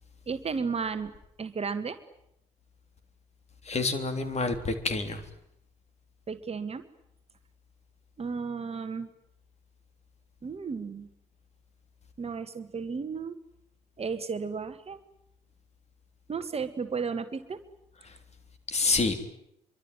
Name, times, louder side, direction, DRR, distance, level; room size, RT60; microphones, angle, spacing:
voice 1, 0.3-1.1 1.4-2.0 6.3-6.8 8.2-9.1 10.4-11.1 12.2-13.4 14.0-15.0 16.3-17.6, right 5 dB, 30° right, 9 dB, 1.8 m, -33 dB
voice 2, 3.6-5.2 18.0-18.2 18.7-19.2, left 3 dB, 30° left, 9 dB, 3.5 m, -28 dB
25.0 x 24.0 x 9.3 m, 0.77 s
figure-of-eight pair, 50°, 21 cm